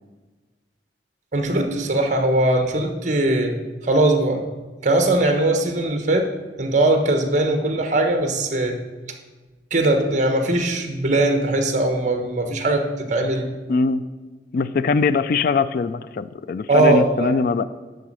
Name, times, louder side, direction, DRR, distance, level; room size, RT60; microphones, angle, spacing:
voice 1, 1.3-3.5 3.8-4.4 4.8-6.3 6.6-8.8 9.7-13.5 16.7-17.3, right 2 dB, 45° right, 5 dB, 1.2 m, -20 dB
voice 2, 13.7-14.0 14.5-17.6, left 4 dB, 55° left, 14 dB, 0.3 m, -21 dB
10.5 x 4.1 x 7.5 m, 1.3 s
head